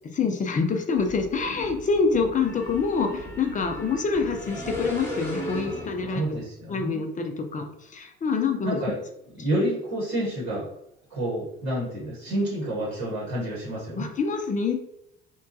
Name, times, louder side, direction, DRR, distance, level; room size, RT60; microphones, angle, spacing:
voice 1, 0.1-6.4 6.7-8.8 14.0-14.7, left 4 dB, 25° left, 5 dB, 0.5 m, -26 dB
sound 1, 1.0-6.5, left 1 dB, 5° left, 0.9 m, -37 dB
voice 2, 6.1-7.0 8.6-9.0 9.3-10.7 11.1-14.1, right 1 dB, 60° right, -6 dB, 1.2 m, -29 dB
2.9 x 2.2 x 2.6 m, 0.78 s
figure-of-eight pair, 50°, 33 cm